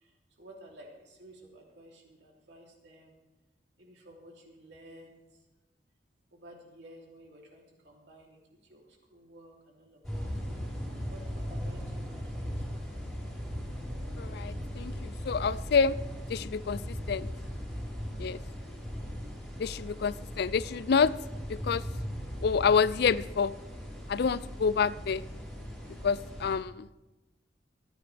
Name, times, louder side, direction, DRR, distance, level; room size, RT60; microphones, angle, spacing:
voice 1, 0.4-3.1 3.8-5.2 6.3-8.4 8.7-8.8 9.1-10.5 11.1-12.8, right 1 dB, 70° right, -1 dB, 3.2 m, -53 dB
sound 1, 10.0-26.6, equal, ahead, 4.4 m, -38 dB
voice 2, 14.2-16.0 16.3-17.3 18.2-18.4 19.6-21.1 21.5-21.8 22.4-23.5 24.1-25.2 26.0-26.9, left 6 dB, 60° left, 18 dB, 0.4 m, -28 dB
25.5 x 9.9 x 3.4 m, 1.1 s
head